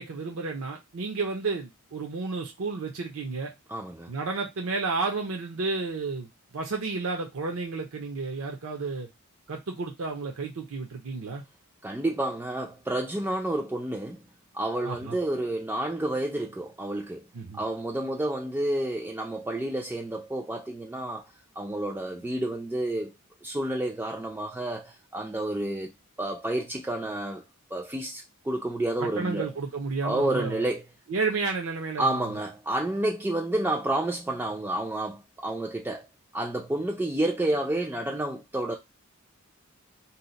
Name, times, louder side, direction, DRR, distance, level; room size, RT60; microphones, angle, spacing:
voice 1, 0.0-3.5 4.1-9.1 9.5-11.4 14.8-15.2 17.3-17.6 29.0-30.7 31.1-32.4, right 4 dB, 70° right, 0.6 m, -32 dB
voice 2, 3.7-4.1 11.8-14.2 14.5-17.2 17.5-21.2 21.6-23.1 23.4-25.9 26.2-27.4 27.7-29.5 30.0-30.8 32.0-36.1 36.3-38.7, right 1 dB, 10° right, 0.3 m, -30 dB
2.7 x 2.1 x 3.9 m
head